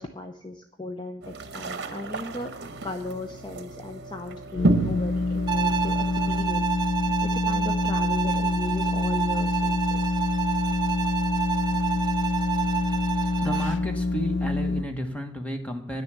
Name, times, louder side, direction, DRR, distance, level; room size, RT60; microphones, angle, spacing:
voice 1, 0.0-2.5 2.8-6.7 7.0-10.2, left 2 dB, 25° left, 5 dB, 0.7 m, -37 dB
sound 1, 1.2-6.4, right 2 dB, 55° right, 1.0 m, -30 dB
sound 2, 4.6-14.8, left 3 dB, 70° left, 0.5 m, -26 dB
Bowed string instrument, 5.5-13.8, right 9 dB, 20° right, 0.6 m, -29 dB
voice 2, 12.7-13.0 13.4-16.0, equal, 5° left, 4 dB, 1.3 m, -33 dB
10.5 x 6.7 x 8.2 m, 0.77 s
head